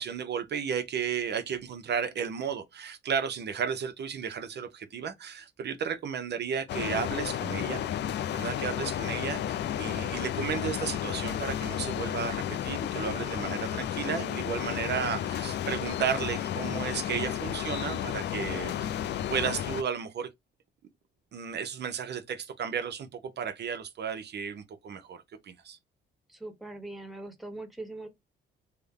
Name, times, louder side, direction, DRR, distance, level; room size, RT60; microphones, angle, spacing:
voice 1, 0.0-7.9 8.3-18.9 19.3-20.3 21.3-25.8, right 7 dB, 60° right, 0.7 m, -33 dB
sound 1, 6.7-19.8, left 10 dB, 60° left, 0.4 m, -32 dB
voice 2, 26.3-28.1, right 2 dB, ahead, 1.1 m, -41 dB
3.3 x 2.1 x 3.6 m
cardioid pair, 90°, 20 cm